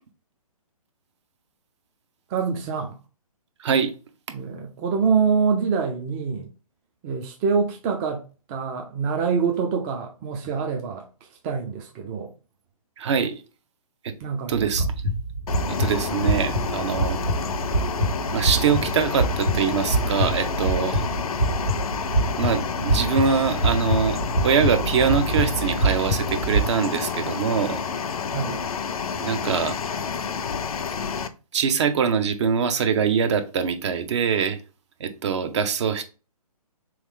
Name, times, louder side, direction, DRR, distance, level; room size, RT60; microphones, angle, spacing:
voice 1, 2.3-3.0 4.3-6.5 7.0-11.1 11.4-12.3 14.2-14.7 28.3-28.6, right 5 dB, 15° right, 0.4 m, -25 dB
voice 2, 3.6-3.9 13.0-13.4 14.0-14.1 14.5-14.9 15.7-17.2 18.3-21.0 22.4-27.8 29.2-29.8 31.5-34.6 35.0-36.0, right 6 dB, 50° right, 0.7 m, -23 dB
sound 1, 14.6-26.6, right 1 dB, 75° right, 1.6 m, -25 dB
Ambience Outdoor Wind Birds, 15.5-31.3, left 6 dB, 70° left, 0.5 m, -29 dB
3.7 x 3.1 x 3.5 m
hypercardioid pair, 145°, 19 cm